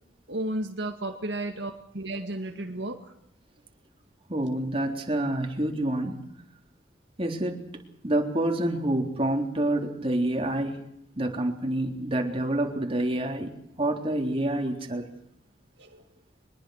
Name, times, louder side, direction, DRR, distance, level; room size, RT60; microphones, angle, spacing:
voice 1, 0.3-3.0 15.8-16.0, right 1 dB, 70° right, 4 dB, 2.1 m, -33 dB
voice 2, 4.3-6.2 7.2-10.8 11.2-15.1, right 1 dB, 30° right, 2 dB, 3.7 m, -28 dB
23.5 x 21.5 x 6.6 m, 0.75 s
head